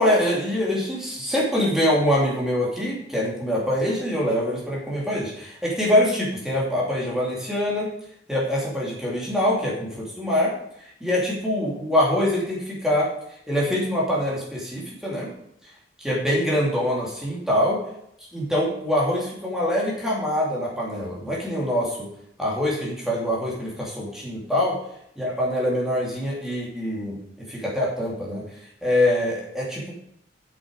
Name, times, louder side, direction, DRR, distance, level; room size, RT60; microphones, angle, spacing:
voice 1, 0.0-7.9 8.3-10.5 11.0-13.1 13.5-15.3 16.0-17.8 18.3-22.1 22.4-24.8 25.2-28.4 28.8-29.9, left 1 dB, 5° right, -4 dB, 2.7 m, -24 dB
7.6 x 7.1 x 4.8 m, 0.74 s
head